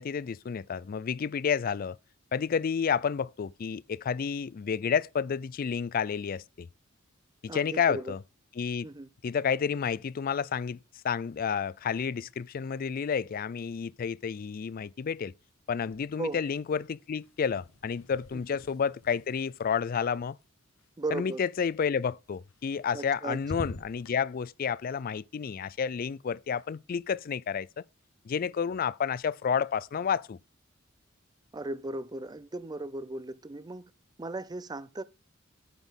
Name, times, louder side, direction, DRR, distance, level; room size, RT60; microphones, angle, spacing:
voice 1, 0.0-2.0 2.3-6.7 7.4-8.2 8.6-8.9 9.2-10.8 11.0-15.3 15.7-20.4 21.1-27.8 28.3-30.4, left 6 dB, 45° left, 0.3 m, -30 dB
voice 2, 7.5-8.1 8.8-9.1 16.2-16.4 18.3-18.4 21.0-21.4 22.9-23.7 31.5-33.9 34.2-35.0, right 2 dB, 20° right, 0.5 m, -37 dB
sound 1, 15.8-16.5 16.8-20.9 22.5-23.1 23.4-24.2, left 2 dB, 85° left, 0.8 m, -46 dB
9.2 x 4.0 x 7.1 m
head